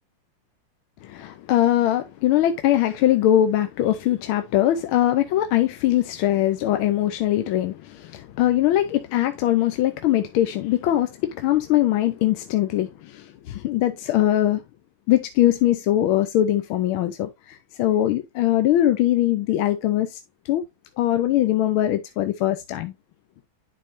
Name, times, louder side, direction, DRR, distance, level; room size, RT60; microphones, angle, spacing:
voice 1, 1.0-14.6 15.1-20.2 20.5-20.7 21.0-22.9, left 13 dB, 80° left, 1.5 m, -21 dB
11.0 x 4.5 x 2.6 m
omnidirectional pair, 2.3 m